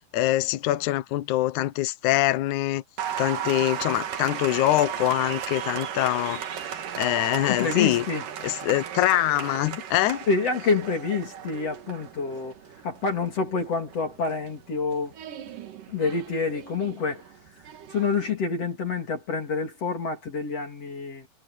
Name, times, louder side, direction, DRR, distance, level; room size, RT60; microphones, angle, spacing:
voice 1, 0.1-2.8 3.2-8.0 8.4-10.2, left 15 dB, 85° left, 1.7 m, -24 dB
Applause, 3.0-18.3, right 9 dB, 60° right, 3.2 m, -36 dB
voice 2, 7.4-8.3 10.3-12.6 12.8-15.1 15.9-17.3 17.5-21.3, left 4 dB, 40° left, 3.7 m, -27 dB
omnidirectional pair, 4.7 m